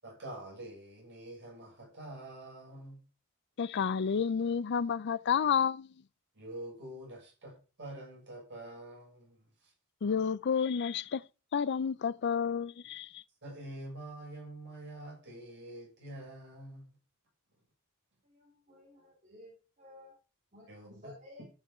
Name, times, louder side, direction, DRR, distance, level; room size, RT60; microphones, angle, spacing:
voice 1, 0.0-3.0 6.3-9.7 13.4-17.0 20.7-21.1, right 1 dB, 55° right, 6.2 m, -46 dB
voice 2, 3.6-5.9 10.0-11.2 11.5-13.2, left 7 dB, 50° left, 0.4 m, -30 dB
voice 3, 18.2-20.1 20.5-20.7 21.0-21.4, left 1 dB, 35° right, 3.3 m, -54 dB
13.0 x 5.7 x 5.0 m
head